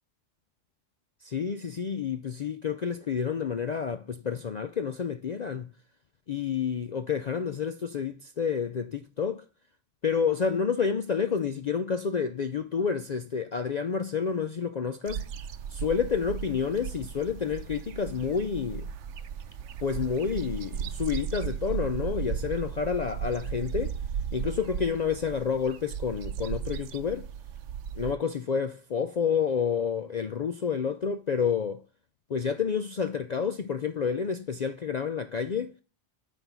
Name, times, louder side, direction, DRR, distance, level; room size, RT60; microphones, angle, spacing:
voice 1, 1.2-5.7 6.3-9.5 10.0-15.3 15.7-18.9 19.8-24.0 24.3-27.3 28.0-31.8 32.3-35.8, left 6 dB, 55° left, 0.4 m, -29 dB
sound 1, 15.1-28.1, right 8 dB, 75° right, 1.0 m, -36 dB
9.2 x 3.7 x 6.0 m
omnidirectional pair, 1.3 m